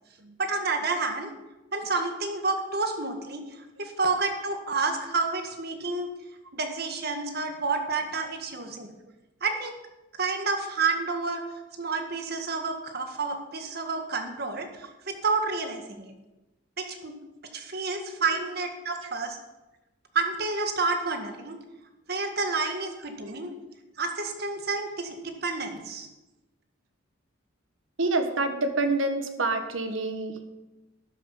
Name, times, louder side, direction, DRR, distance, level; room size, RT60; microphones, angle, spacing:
voice 1, 0.4-1.3 1.7-3.4 3.8-6.1 6.5-8.9 9.4-9.8 10.2-11.4 11.8-16.1 16.8-17.1 17.5-19.4 20.1-21.6 22.1-23.5 24.0-26.1, right 3 dB, 50° right, 5 dB, 1.7 m, -29 dB
voice 2, 28.0-30.5, right 2 dB, 80° right, 7 dB, 1.5 m, -27 dB
12.5 x 9.9 x 5.7 m, 1.0 s
head